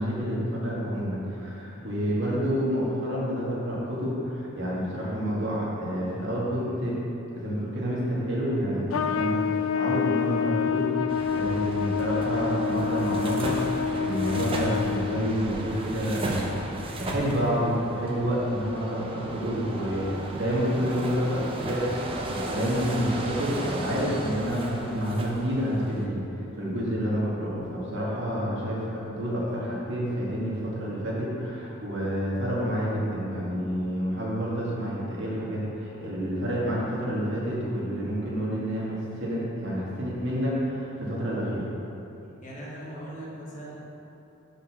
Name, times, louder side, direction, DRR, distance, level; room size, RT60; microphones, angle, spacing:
voice 1, 0.0-7.0 7.3-16.4 17.0-26.2 26.6-41.7, equal, 60° right, -6 dB, 1.9 m, -29 dB
Trumpet, 8.9-15.4, left 7 dB, 70° left, 0.3 m, -27 dB
sound 1, 11.1-26.1, right 1 dB, 25° right, 0.6 m, -36 dB
voice 2, 42.4-43.8, right 1 dB, 35° left, -5 dB, 1.4 m, -40 dB
6.5 x 5.2 x 6.1 m, 2.9 s
head